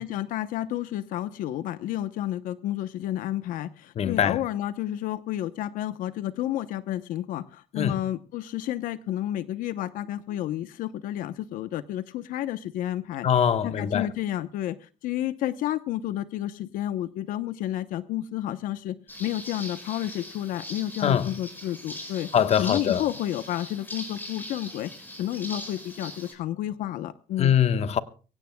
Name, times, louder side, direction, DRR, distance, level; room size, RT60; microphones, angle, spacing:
voice 1, 0.0-13.3 13.6-22.3 22.6-24.9 25.2-27.5, left 13 dB, 85° left, 0.9 m, -31 dB
voice 2, 4.0-4.4 7.8-8.0 13.2-14.1 21.0-21.3 22.3-23.0 27.4-28.0, left 8 dB, 50° left, 1.2 m, -22 dB
sound 1, 19.1-26.3, left 1 dB, 15° left, 6.4 m, -41 dB
24.0 x 17.5 x 2.2 m
cardioid pair, 115°, 14 cm